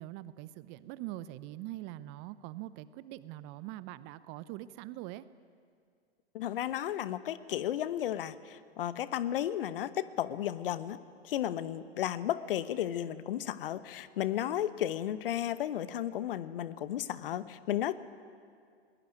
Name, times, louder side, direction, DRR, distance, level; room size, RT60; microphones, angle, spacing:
voice 1, 0.0-5.2, right 15 dB, 35° right, 16 dB, 0.7 m, -43 dB
voice 2, 6.3-11.0 11.2-18.0, left 11 dB, 55° left, 14 dB, 1.1 m, -34 dB
21.0 x 19.5 x 9.2 m, 2.2 s
figure-of-eight pair, 100°, 32 cm